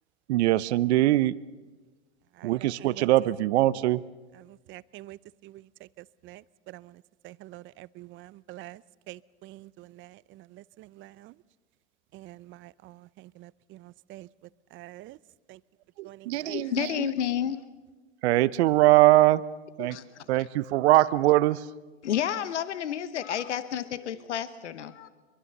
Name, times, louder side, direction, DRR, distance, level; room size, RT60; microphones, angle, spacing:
voice 1, 0.3-1.4 2.4-4.0 16.0-17.1 18.2-19.5 19.8-20.0 20.3-21.7, right 16 dB, 70° right, 0.9 m, -22 dB
voice 2, 4.5-5.6 6.0-8.8 9.1-11.3 12.1-14.3 14.7-15.2 15.5-15.6 16.0-16.3, right 17 dB, 35° right, 0.6 m, -47 dB
voice 3, 16.5-17.6 19.8-20.0 22.0-25.1, left 10 dB, 85° left, 1.1 m, -30 dB
24.0 x 23.0 x 6.8 m
hypercardioid pair, 105°, 34 cm